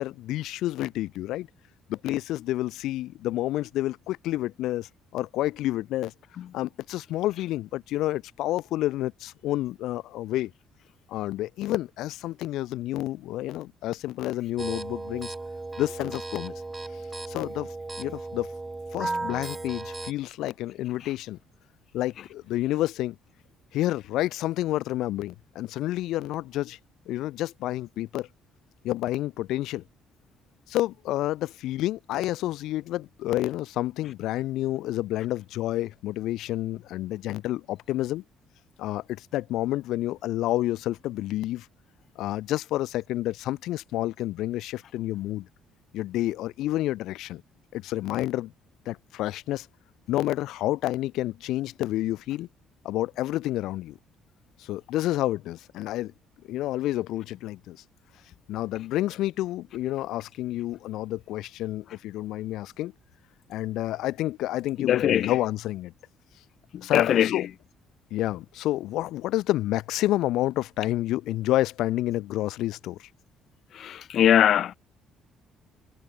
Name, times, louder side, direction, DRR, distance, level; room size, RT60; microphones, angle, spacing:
voice 1, 0.0-1.5 1.9-6.1 6.5-10.5 11.1-15.3 15.8-16.5 17.3-17.7 18.0-18.5 18.9-21.4 21.9-23.2 23.7-26.8 27.1-28.3 28.8-29.8 30.7-38.2 38.8-41.7 42.2-45.5 45.9-47.4 47.7-48.5 48.9-49.7 50.1-52.5 52.8-54.0 54.6-56.1 56.5-57.8 58.5-62.9 63.5-65.9 66.8-67.5 68.1-73.1, left 15 dB, 80° left, 2.4 m, -29 dB
sound 1, 14.6-20.1, right 3 dB, 15° right, 6.2 m, -35 dB
voice 2, 64.8-65.3 66.7-67.5 73.7-74.7, left 10 dB, 60° left, 0.6 m, -22 dB
cardioid pair, 105°, 0 cm